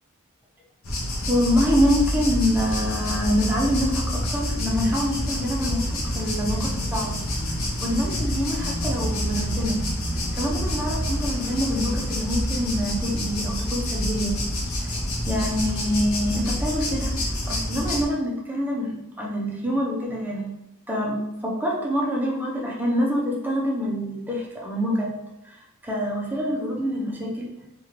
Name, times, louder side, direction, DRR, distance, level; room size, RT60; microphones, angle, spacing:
sound 1, 0.8-18.0, equal, 75° left, 0.8 m, -27 dB
voice 1, 1.3-7.1 7.8-9.8 10.3-14.3 15.3-17.2 17.5-20.5 20.9-25.1 25.4-27.5, equal, 10° right, -3 dB, 0.6 m, -26 dB
2.8 x 2.5 x 3.1 m, 0.87 s
head